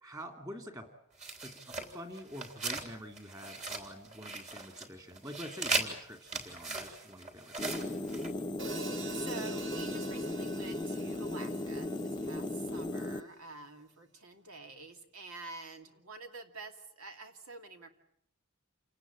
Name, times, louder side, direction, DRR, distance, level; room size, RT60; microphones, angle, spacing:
voice 1, 0.0-0.9 1.4-8.0, equal, 15° right, 6 dB, 2.8 m, -47 dB
sound 1, 1.2-2.9 3.2-4.9 5.1-8.3, right 3 dB, 35° right, 3.5 m, -38 dB
sound 2, 7.6-13.2, left 1 dB, 20° left, 1.0 m, -36 dB
Hi-hat, 8.6-12.9, right 4 dB, 60° right, 2.5 m, -45 dB
voice 2, 8.8-17.9, right 3 dB, 85° right, 5 dB, 2.7 m, -48 dB
28.0 x 18.5 x 8.9 m, 0.71 s
head